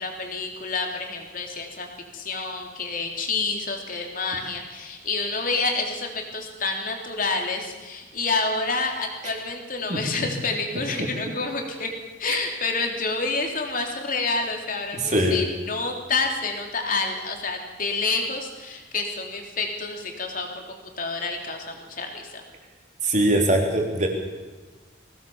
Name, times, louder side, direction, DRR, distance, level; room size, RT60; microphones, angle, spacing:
voice 1, 0.0-1.9 2.1-11.9 12.2-22.4, left 3 dB, 45° left, 3 dB, 3.4 m, -28 dB
voice 2, 9.9-10.3 12.3-12.4 14.9-15.5 23.0-24.1, right 1 dB, 35° right, 2 dB, 3.7 m, -22 dB
22.0 x 18.0 x 7.3 m, 1.2 s
head